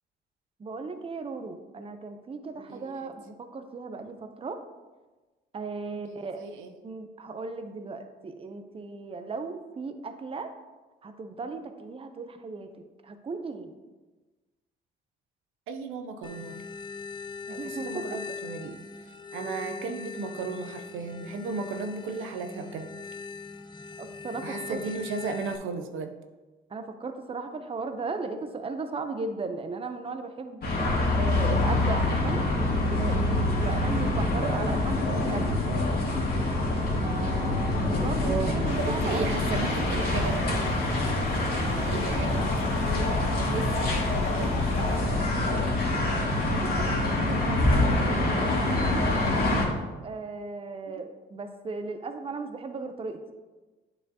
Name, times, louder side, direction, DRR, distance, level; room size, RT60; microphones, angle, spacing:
voice 1, 0.6-4.6 5.5-6.4 6.8-10.5 11.0-13.7 17.5-18.0 24.0-24.8 26.7-30.6 31.1-35.4 37.0-39.5 45.9-49.2 50.0-53.2, right 4 dB, 30° right, 7 dB, 0.6 m, -37 dB
voice 2, 2.6-3.1 5.9-6.7 15.7-16.6 17.5-18.8 19.3-22.9 24.4-26.1 38.2-40.5 41.9-45.4 50.9-51.0, right 4 dB, 90° right, 6 dB, 0.6 m, -36 dB
sound 1, 16.2-25.6, left 4 dB, 25° left, 0.7 m, -40 dB
sound 2, 30.6-49.7, left 2 dB, 50° left, 1.9 m, -26 dB
sound 3, 38.6-45.0, left 3 dB, 75° left, 1.9 m, -38 dB
8.5 x 4.9 x 2.8 m, 1.2 s
cardioid pair, 90°, 20 cm